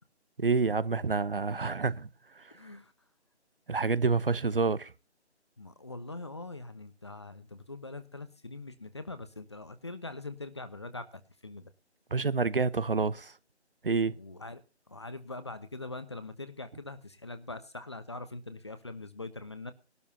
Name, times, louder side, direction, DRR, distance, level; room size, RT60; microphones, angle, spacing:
voice 1, 0.4-2.1 2.4-2.5 3.7-4.9 12.1-13.3 13.8-14.1, right 4 dB, 55° right, 0.9 m, -28 dB
voice 2, 2.5-2.9 4.3-4.4 5.6-11.7 14.1-14.6 14.9-19.7, left 2 dB, 25° left, 0.9 m, -43 dB
20.0 x 12.5 x 2.8 m
figure-of-eight pair, 170°, 34 cm